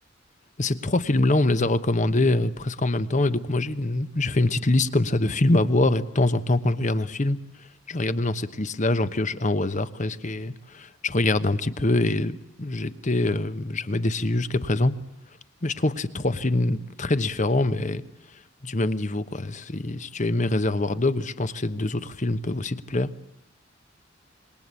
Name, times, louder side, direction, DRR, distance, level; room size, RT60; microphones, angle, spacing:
voice 1, 0.6-7.4 7.9-14.9 15.6-18.0 18.6-23.1, left 2 dB, 40° left, 13 dB, 1.1 m, -24 dB
26.5 x 22.0 x 8.4 m, 0.72 s
head